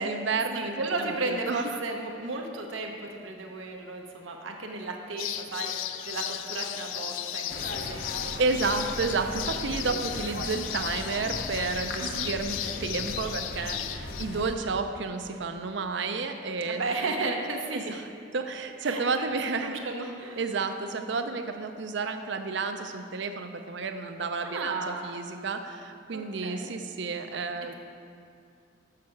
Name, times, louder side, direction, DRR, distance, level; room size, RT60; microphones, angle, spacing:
voice 1, 0.0-1.6 8.4-16.8 17.7-18.0 18.3-19.8 20.4-27.7, right 4 dB, 65° right, 7 dB, 0.6 m, -31 dB
voice 2, 0.5-8.4 12.0-12.4 16.6-17.8 18.8-20.4 24.4-25.2 26.1-26.7, right 3 dB, 85° right, 2 dB, 0.9 m, -34 dB
sound 1, 5.2-14.2, left 11 dB, 90° left, 0.4 m, -35 dB
sound 2, 7.5-14.5, left 1 dB, 55° left, 0.7 m, -38 dB
6.6 x 6.4 x 5.8 m, 2.5 s
head